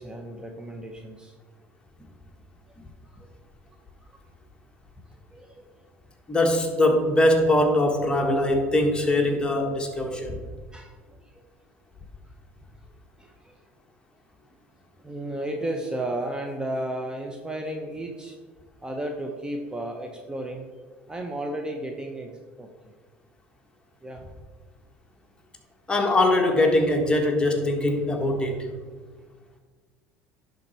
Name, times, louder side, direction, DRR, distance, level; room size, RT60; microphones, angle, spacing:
voice 1, 0.0-1.3 3.0-3.2 5.3-5.7 10.7-10.9 11.2-11.4 13.2-13.6 15.0-18.3 18.8-20.7 21.1-22.7 24.0-24.2, right 1 dB, 15° right, 2 dB, 0.9 m, -33 dB
voice 2, 6.3-10.4 25.9-28.7, left 1 dB, 15° left, 2 dB, 1.5 m, -22 dB
10.5 x 4.0 x 4.5 m, 1.4 s
supercardioid pair, 85°, 6 cm